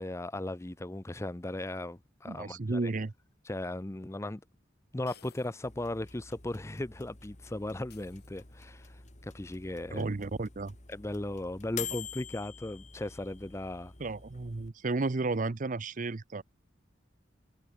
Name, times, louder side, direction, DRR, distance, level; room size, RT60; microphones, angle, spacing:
voice 1, 0.0-2.9 3.5-4.4 4.9-10.1 10.9-13.9, left 1 dB, 15° left, 0.6 m, -37 dB
voice 2, 2.3-3.1 9.9-10.7 14.0-16.4, right 3 dB, 45° right, 0.6 m, -33 dB
sound 1, 3.6-3.7 5.1-5.8 6.1-6.2 7.9-8.8, left 9 dB, 55° left, 6.7 m, -59 dB
sound 2, 5.6-14.7, left 7 dB, 40° left, 3.0 m, -47 dB
head